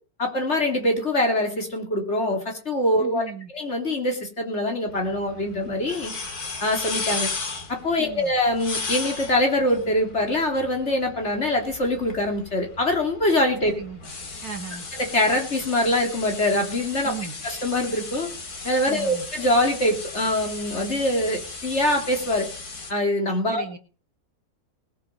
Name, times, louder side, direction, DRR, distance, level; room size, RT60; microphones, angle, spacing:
voice 1, 0.2-3.2 3.5-6.1 6.6-7.3 7.7-13.7 14.9-17.1 17.4-18.3 18.6-22.5 22.9-23.6, left 1 dB, 45° left, 2 dB, 3.3 m, -24 dB
voice 2, 3.0-3.5 8.0-8.3 13.6-14.0 14.4-14.9 17.0-17.3 18.9-19.3 23.5-23.8, right 7 dB, 75° right, 5 dB, 2.4 m, -36 dB
sound 1, 4.9-22.9, left 4 dB, 85° left, 2.7 m, -36 dB
19.5 x 7.7 x 5.5 m, 0.37 s
omnidirectional pair, 1.6 m